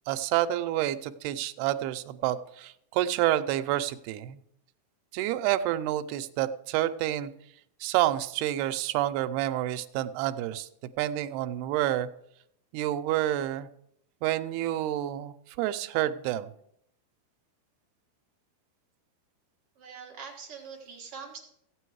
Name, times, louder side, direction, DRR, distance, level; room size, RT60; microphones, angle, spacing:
voice 1, 0.1-4.4 5.1-7.3 7.8-10.7 11.0-12.1 12.7-13.7 14.2-16.5, right 13 dB, 90° right, 10 dB, 2.6 m, -28 dB
voice 2, 19.8-21.4, right 6 dB, 50° right, 0 dB, 1.9 m, -43 dB
15.0 x 8.4 x 4.7 m, 0.73 s
omnidirectional pair, 4.5 m